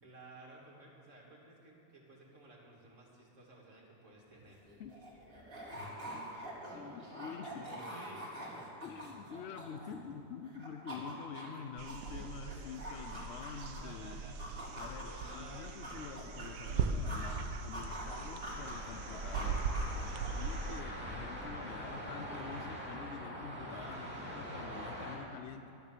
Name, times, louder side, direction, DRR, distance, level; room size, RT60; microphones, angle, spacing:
voice 1, 0.0-4.6 5.7-6.2 6.8-7.0 7.5-8.2 13.8-14.6 15.0-15.9 23.6-24.5, right 1 dB, 50° right, -2 dB, 2.6 m, -55 dB
sound 1, 4.4-4.5 4.6-10.2 10.5-14.0 14.4-17.4 17.7-20.5, equal, 30° right, 2.9 m, -46 dB
voice 2, 6.7-7.6 8.8-14.2 14.8-19.7 20.3-25.7, left 6 dB, 70° left, 7 dB, 0.6 m, -47 dB
sound 2, 11.8-20.8, right 4 dB, 85° right, 1.4 m, -39 dB
sound 3, 18.4-25.2, equal, 5° right, 2.9 m, -44 dB
12.0 x 10.5 x 6.8 m, 2.9 s
omnidirectional pair, 1.8 m